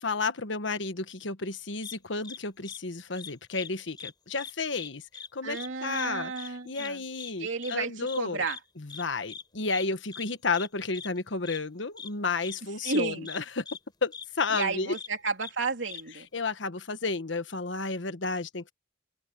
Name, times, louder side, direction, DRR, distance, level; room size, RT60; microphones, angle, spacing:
voice 1, 0.0-5.0 5.3-8.4 8.8-13.6 14.0-14.9 16.3-18.7, left 4 dB, 70° left, 1.3 m, -32 dB
sound 1, 1.8-2.0 2.2-2.4 2.6-2.8 3.2-3.7 4.0-4.1 4.4-4.9 5.1-5.3 5.5-5.7 5.9-6.1 6.4-6.5 6.8-6.9 7.2-7.3 7.6-7.7 8.1-8.2 8.5-8.6 8.9-9.0 9.3-9.4 9.7-9.8 10.1-10.2 10.5-10.7 10.9-11.1 11.5-11.6 12.0-12.1 12.4-12.6 12.8-13.0 13.2-13.4 13.7-13.8 14.1-14.2 14.5-14.6 14.9-15.1 15.4-15.5 15.9-16.0, left 6 dB, 20° left, 5.1 m, -41 dB
voice 2, 5.4-7.0 7.4-8.6 12.8-13.3 14.5-16.3, right 4 dB, 75° right, 3.2 m, -32 dB
open air
head